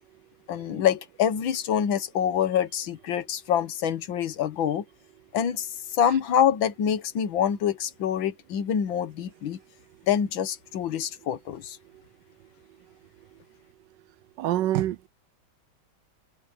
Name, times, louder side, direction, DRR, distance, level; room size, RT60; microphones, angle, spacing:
voice 1, 0.5-4.9 5.3-5.7 6.0-9.6 10.1-11.8, left 9 dB, 80° left, 1.9 m, -26 dB
voice 2, 14.4-15.1, right 13 dB, 75° right, 1.2 m, -25 dB
omnidirectional pair, 2.1 m